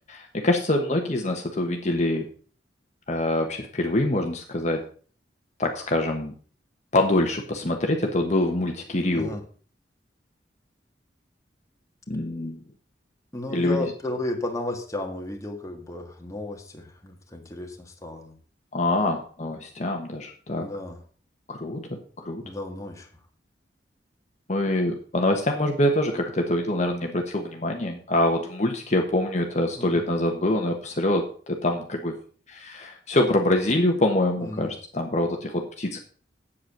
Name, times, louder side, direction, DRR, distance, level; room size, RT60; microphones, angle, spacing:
voice 1, 0.1-2.3 3.1-4.8 5.6-6.3 6.9-9.3 12.1-12.6 13.5-13.9 18.7-20.7 21.5-22.5 24.5-32.2 32.5-36.0, left 1 dB, 40° left, 3 dB, 1.3 m, -25 dB
voice 2, 13.3-18.4 20.6-21.0 22.4-23.1 29.8-30.0 34.4-34.7, left 2 dB, 20° left, 2 dB, 1.7 m, -33 dB
8.6 x 8.1 x 6.0 m, 0.43 s
head